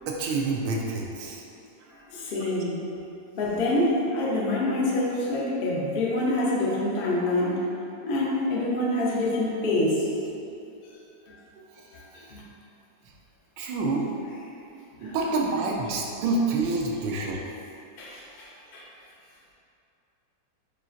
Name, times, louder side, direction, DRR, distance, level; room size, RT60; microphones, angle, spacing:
voice 1, 0.1-1.4 2.4-2.5 13.6-14.1 15.0-17.4, right 3 dB, 85° right, -1 dB, 1.3 m, -27 dB
voice 2, 1.9-2.8 3.3-7.6 8.0-10.1 11.3-11.4 11.9-12.4 15.0-15.2 18.0-18.9, left 1 dB, 80° left, -5 dB, 0.5 m, -26 dB
6.8 x 2.5 x 2.4 m, 2.7 s
omnidirectional pair, 2.0 m